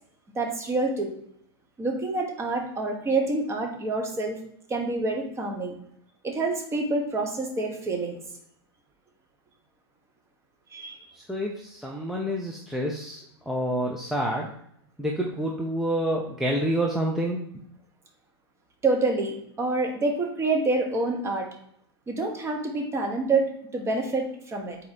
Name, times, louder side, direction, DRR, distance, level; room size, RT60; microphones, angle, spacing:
voice 1, 0.3-1.1 1.8-4.4 4.7-5.8 6.2-8.2 10.7-11.0 18.8-21.5 22.1-24.8, right 3 dB, 20° right, 2 dB, 0.8 m, -27 dB
voice 2, 11.3-14.5 15.0-17.4, equal, ahead, -2 dB, 0.4 m, -28 dB
4.1 x 2.7 x 4.1 m, 0.70 s
hypercardioid pair, 110°, 14 cm